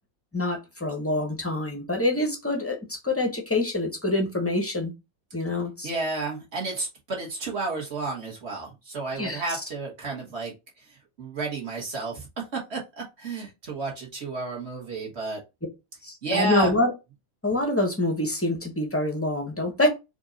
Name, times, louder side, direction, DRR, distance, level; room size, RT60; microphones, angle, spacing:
voice 1, 0.3-4.9 5.3-5.9 9.2-9.4 16.0-16.9 17.4-19.9, left 2 dB, 15° left, 0.6 m, -26 dB
voice 2, 5.8-15.4 16.2-16.8, right 3 dB, 50° right, 1.7 m, -32 dB
4.5 x 2.6 x 3.9 m
omnidirectional pair, 1.5 m